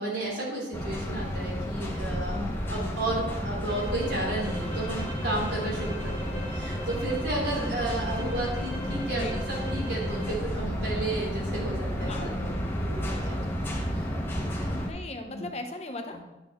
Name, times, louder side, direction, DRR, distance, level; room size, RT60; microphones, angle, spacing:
voice 1, 0.0-13.3 13.9-14.1 14.6-14.7 15.3-15.5 16.1-16.2, right 2 dB, 80° right, -3 dB, 3.4 m, -33 dB
sound 1, 0.7-14.9, equal, 10° left, 1.0 m, -31 dB
sound 2, 3.6-10.4, right 1 dB, 25° right, 3.4 m, -42 dB
voice 2, 7.6-8.0 9.1-9.4 12.0-12.3 14.7-16.2, left 1 dB, 35° left, 5 dB, 0.8 m, -38 dB
10.0 x 6.3 x 3.6 m, 0.99 s
head